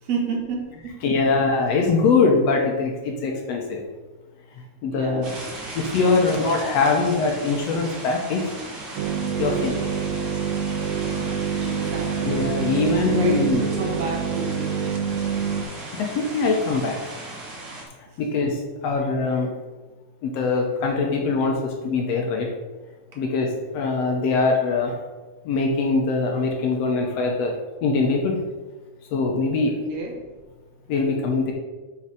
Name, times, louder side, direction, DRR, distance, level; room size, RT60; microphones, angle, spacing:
voice 1, 0.0-1.1 4.9-5.8 6.2-6.4 9.4-9.8 11.6-12.4 12.9-14.8 29.7-30.2, right 4 dB, 65° right, 0 dB, 2.3 m, -31 dB
voice 2, 1.0-3.8 4.8-5.3 5.8-8.4 9.4-9.7 12.2-13.6 15.9-17.0 18.2-19.5 20.2-22.5 23.2-24.9 25.5-27.5 27.8-28.4 29.1-29.8 30.9-31.5, left 4 dB, 70° left, 1 dB, 1.8 m, -22 dB
sound 1, 5.2-17.8, right 2 dB, 45° right, 1.8 m, -37 dB
sound 2, 9.0-15.6, right 6 dB, 85° right, 2.1 m, -26 dB
8.5 x 4.7 x 4.8 m, 1.3 s
omnidirectional pair, 3.4 m